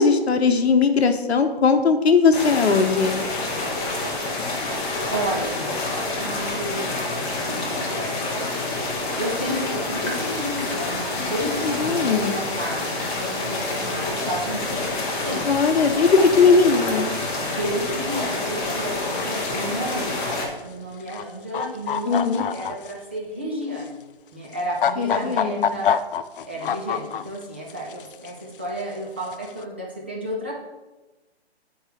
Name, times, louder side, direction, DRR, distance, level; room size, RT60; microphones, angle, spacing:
voice 1, 0.0-3.2 11.6-12.4 15.4-17.1 22.1-22.4 25.0-25.7, left 5 dB, 75° left, 7 dB, 0.9 m, -19 dB
sound 1, 2.3-20.5, left 2 dB, 20° left, 1.1 m, -27 dB
voice 2, 5.1-5.8 6.2-7.2 7.5-8.4 9.2-15.0 15.2-15.6 17.4-24.0 24.3-25.9 26.4-30.5, equal, 10° right, -4 dB, 0.3 m, -32 dB
sound 2, 19.1-19.4 19.8-20.2 21.0-21.2 21.5-22.9 23.8-23.9 24.5-27.4 27.7-28.3 29.2-29.5, left 8 dB, 55° left, 0.4 m, -25 dB
9.6 x 4.6 x 3.3 m, 1.1 s
hypercardioid pair, 145°, 32 cm